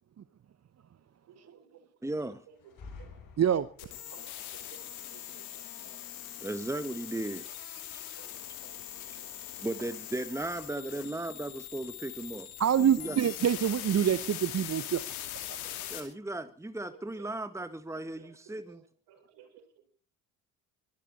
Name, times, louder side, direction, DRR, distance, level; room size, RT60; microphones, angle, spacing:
voice 1, 1.3-1.9 2.5-3.1 3.6-6.1 8.2-8.3 8.6-10.0 11.0-11.2 12.1-12.2 13.8-13.9 15.2-16.2 16.9-17.3 17.6-17.7 17.9-20.0, right 7 dB, 70° right, 6.4 m, -58 dB
voice 2, 2.0-2.4 6.4-7.5 7.9-8.0 9.1-9.2 9.6-12.5 12.8-13.2 15.9-18.8, right 2 dB, 5° right, 1.6 m, -36 dB
sound 1, 2.5-4.2, left 4 dB, 50° left, 6.2 m, -49 dB
sound 2, 3.8-16.0, left 11 dB, 85° left, 2.6 m, -42 dB
voice 3, 12.6-15.0, right 9 dB, 40° right, 0.9 m, -25 dB
23.0 x 13.5 x 4.2 m
hypercardioid pair, 50°, 42 cm